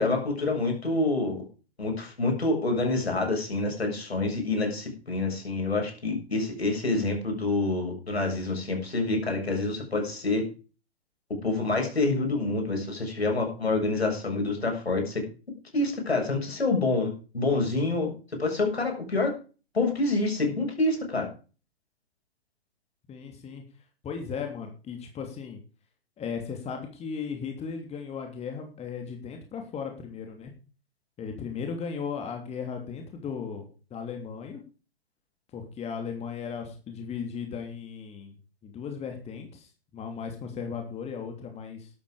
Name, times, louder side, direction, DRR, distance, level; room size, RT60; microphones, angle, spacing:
voice 1, 0.0-1.4 1.8-10.4 11.4-15.2 15.7-18.1 18.4-19.3 19.7-21.3, left 2 dB, 85° left, 2 dB, 7.3 m, -27 dB
voice 2, 23.1-23.6 24.0-25.6 26.2-30.5 31.2-34.6 35.5-38.3 38.6-39.7 39.9-41.9, left 6 dB, 20° left, 4 dB, 3.2 m, -36 dB
13.0 x 12.0 x 5.1 m, 0.36 s
figure-of-eight pair, 115°, 31 cm